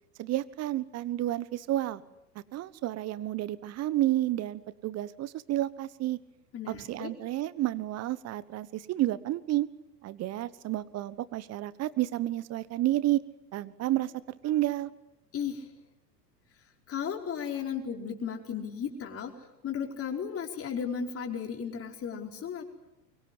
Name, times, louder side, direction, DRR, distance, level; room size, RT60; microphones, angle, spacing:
voice 1, 0.2-2.0 2.5-6.2 6.7-9.7 10.0-13.2 13.5-14.9, right 15 dB, 30° right, 17 dB, 1.3 m, -30 dB
voice 2, 6.5-7.1 15.3-15.7 16.9-19.3 19.6-22.6, left 7 dB, 30° left, 3 dB, 4.8 m, -35 dB
24.5 x 23.0 x 9.9 m, 0.93 s
figure-of-eight pair, 85°, 49 cm